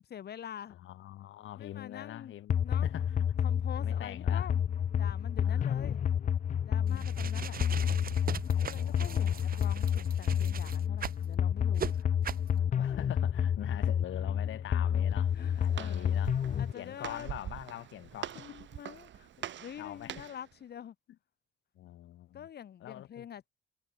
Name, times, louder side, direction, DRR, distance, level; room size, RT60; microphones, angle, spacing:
voice 1, 0.0-0.8 1.6-2.4 2.6-2.9 3.4-6.0 6.6-7.6 8.3-11.9 15.3-16.2 16.6-17.3 18.4-20.9 22.3-23.5, left 9 dB, 55° left, 1.2 m, -46 dB
voice 2, 0.7-3.3 3.8-4.5 5.4-5.9 6.8-7.1 8.5-9.6 11.9-16.4 16.7-18.6 19.8-20.3 21.7-22.5 22.8-23.3, left 13 dB, 75° left, 2.7 m, -44 dB
sound 1, 2.5-16.7, left 8 dB, 40° left, 0.5 m, -30 dB
sound 2, 6.9-11.2 11.8-11.9 12.2-12.5, right 8 dB, 50° right, 1.3 m, -40 dB
Walk footsteps, 15.1-20.5, right 11 dB, 70° right, 2.9 m, -44 dB
cardioid pair, 90°, 20 cm